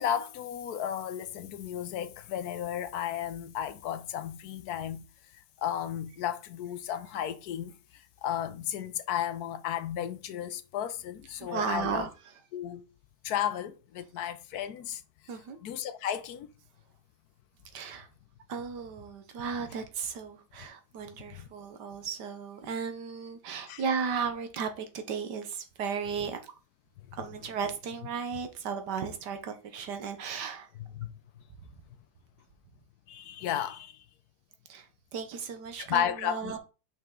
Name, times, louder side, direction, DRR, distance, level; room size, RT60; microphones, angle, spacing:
voice 1, 0.0-5.0 5.6-12.1 12.5-12.9 13.2-15.0 15.6-16.5 21.4-21.5 23.7-23.8 27.1-27.2 31.0-31.1 33.1-34.0 35.8-36.6, left 10 dB, 70° left, 1.1 m, -34 dB
voice 2, 11.4-12.1 15.3-15.6 17.7-18.1 18.5-26.5 27.2-30.7 34.7-34.9 35.1-36.6, right 6 dB, 80° right, 1.7 m, -35 dB
5.7 x 5.6 x 3.7 m
omnidirectional pair, 1.8 m